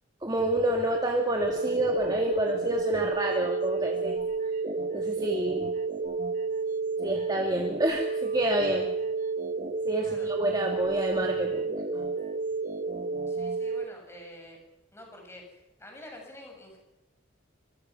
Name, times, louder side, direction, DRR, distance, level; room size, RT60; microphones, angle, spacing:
voice 1, 0.2-4.5 4.9-5.7 7.0-8.9 9.8-12.0, right 1 dB, 20° right, 1 dB, 2.2 m, -28 dB
sound 1, 1.4-13.8, right 4 dB, 40° right, 1.3 m, -31 dB
voice 2, 10.0-10.3 13.3-14.6 14.9-16.8, left 1 dB, 15° left, 1 dB, 6.6 m, -47 dB
26.0 x 22.5 x 6.1 m, 1.0 s
head